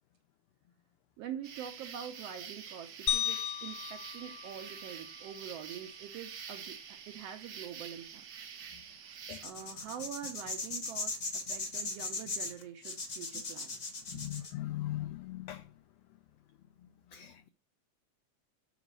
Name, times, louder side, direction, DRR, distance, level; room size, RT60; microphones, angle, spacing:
voice 1, 1.2-8.2 8.9-9.1 9.4-13.8 14.1-14.3, right 9 dB, 75° right, 1.5 m, -45 dB
sound 1, 1.4-9.5, right 7 dB, 60° right, 1.1 m, -47 dB
sound 2, 3.1-5.4, left 11 dB, 65° left, 1.7 m, -36 dB
sound 3, 9.3-14.5, left 3 dB, 50° left, 0.9 m, -38 dB
voice 2, 14.1-15.6 17.1-17.5, left 14 dB, 85° left, 1.4 m, -39 dB
7.2 x 5.0 x 6.1 m
omnidirectional pair, 3.5 m